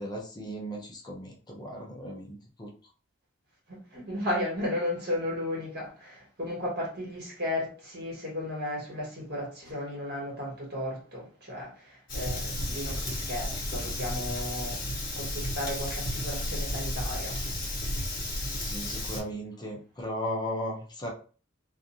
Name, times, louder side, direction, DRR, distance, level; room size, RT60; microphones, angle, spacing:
voice 1, 0.0-2.7 18.5-21.1, equal, 20° left, 0.5 m, -36 dB
voice 2, 3.7-17.4, left 1 dB, 55° right, 1.4 m, -34 dB
Fire, 12.1-19.2, left 1 dB, 45° left, 1.0 m, -33 dB
2.5 x 2.4 x 2.6 m
head